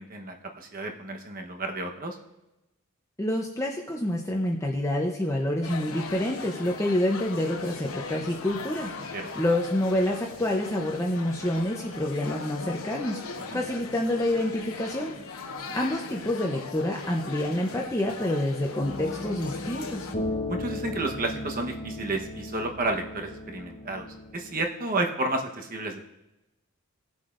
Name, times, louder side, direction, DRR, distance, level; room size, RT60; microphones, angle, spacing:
voice 1, 0.0-2.2 9.1-9.3 13.5-13.6 20.5-24.0 24.3-26.0, right 2 dB, 40° right, 3 dB, 1.1 m, -31 dB
voice 2, 3.2-8.9 9.3-15.1 15.7-20.1, left 1 dB, 15° left, 0 dB, 0.7 m, -28 dB
sound 1, 5.6-20.1, left 4 dB, 70° left, 1.1 m, -39 dB
sound 2, 18.8-24.6, left 1 dB, 40° left, 0.9 m, -36 dB
19.5 x 7.5 x 2.5 m, 0.97 s
head